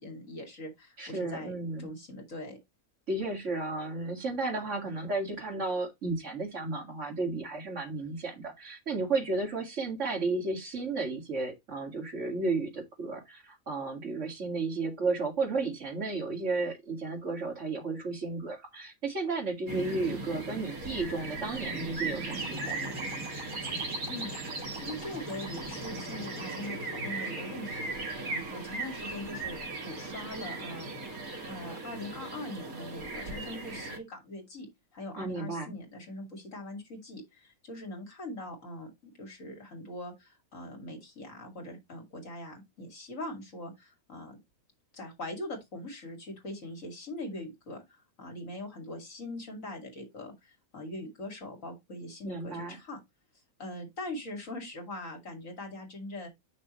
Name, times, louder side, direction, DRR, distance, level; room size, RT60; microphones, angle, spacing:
voice 1, 0.0-1.5 1.8-2.6 24.1-29.6 29.8-31.2 31.5-44.4 44.9-47.8 48.2-53.0 53.6-56.3, left 1 dB, 60° left, 2.8 m, -42 dB
voice 2, 1.0-1.9 3.1-22.9 35.2-35.8 52.2-52.8, right 3 dB, 55° right, 2.5 m, -33 dB
sound 1, 19.7-34.0, right 3 dB, 70° right, 2.1 m, -38 dB
sound 2, 22.3-26.7, right 2 dB, 5° right, 2.3 m, -45 dB
7.8 x 6.1 x 3.1 m
omnidirectional pair, 1.6 m